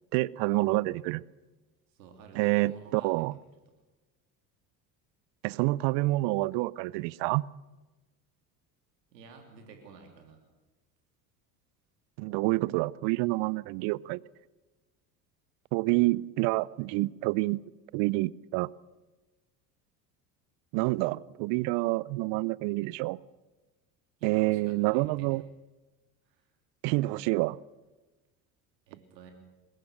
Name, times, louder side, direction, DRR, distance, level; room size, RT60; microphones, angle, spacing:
voice 1, 0.1-1.2 2.3-3.3 5.4-7.5 12.2-14.2 15.7-17.6 17.9-18.7 20.7-23.2 24.2-25.4 26.8-27.6, right 21 dB, 60° right, 23 dB, 0.7 m, -28 dB
voice 2, 1.9-3.3 9.1-10.4 24.2-25.4 26.3-26.4 28.9-29.3, right 5 dB, 80° right, 4 dB, 3.4 m, -51 dB
22.5 x 21.0 x 6.6 m, 1.2 s
hypercardioid pair, 70°, 49 cm